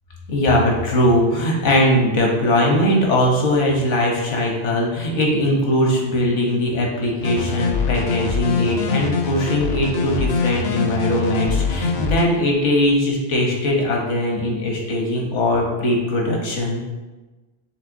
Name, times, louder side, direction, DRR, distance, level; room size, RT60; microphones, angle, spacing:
voice 1, 0.3-16.8, left 1 dB, 80° left, -1 dB, 1.3 m, -20 dB
sound 1, 7.2-12.2, left 4 dB, 65° left, 0.8 m, -23 dB
6.0 x 3.4 x 2.6 m, 1.2 s
omnidirectional pair, 1.2 m